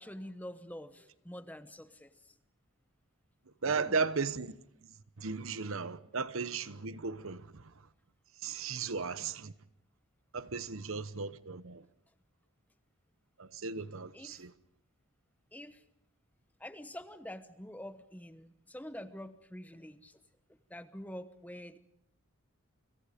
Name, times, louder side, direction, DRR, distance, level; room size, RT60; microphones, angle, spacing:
voice 1, 0.0-2.4 3.7-4.1 13.6-13.7 14.1-14.5 15.5-15.8 16.6-20.2 20.5-21.8, equal, 5° left, 1.0 m, -47 dB
voice 2, 3.6-4.5 5.2-7.6 8.4-9.5 10.3-11.8 13.4-14.5, right 4 dB, 70° right, 1.0 m, -35 dB
29.5 x 26.0 x 5.1 m
head